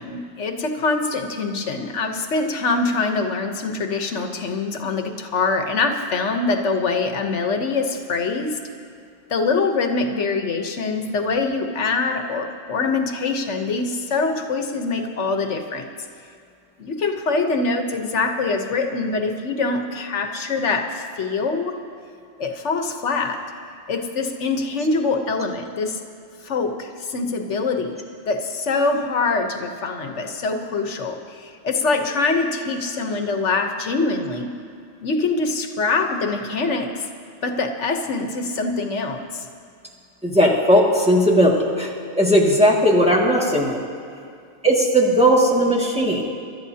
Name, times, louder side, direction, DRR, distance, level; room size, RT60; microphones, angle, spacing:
voice 1, 0.0-8.6 9.3-15.9 16.8-21.8 22.4-23.4 23.9-26.0 26.4-28.0 28.3-34.5 35.0-37.0 37.4-39.5 44.2-44.3 46.2-46.3, left 3 dB, 85° left, 5 dB, 1.3 m, -24 dB
voice 2, 40.2-43.8 44.6-46.2, equal, 5° right, -4 dB, 1.9 m, -17 dB
25.5 x 12.5 x 2.8 m, 2.3 s
omnidirectional pair, 1.2 m